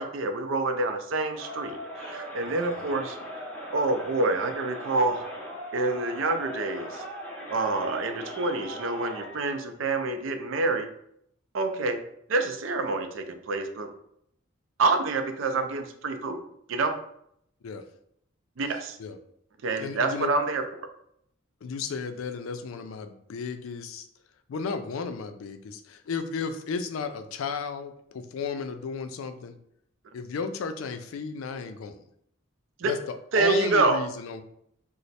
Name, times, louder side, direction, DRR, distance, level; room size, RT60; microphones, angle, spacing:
voice 1, 0.0-3.2 3.7-5.3 5.7-7.0 7.5-10.9 11.5-12.0 12.3-13.9 14.8-16.4 16.7-17.0 18.6-19.0 19.6-20.9 32.8-32.9 33.3-34.0, right 3 dB, 70° right, 7 dB, 0.4 m, -27 dB
Crowd, 1.3-9.4, equal, 5° left, 0.6 m, -39 dB
voice 2, 2.4-2.9 17.6-17.8 19.0-19.2 19.8-20.3 21.6-24.1 24.5-29.6 30.1-32.0 32.8-34.4, left 5 dB, 85° left, 8 dB, 0.4 m, -34 dB
3.1 x 2.0 x 4.1 m, 0.72 s
head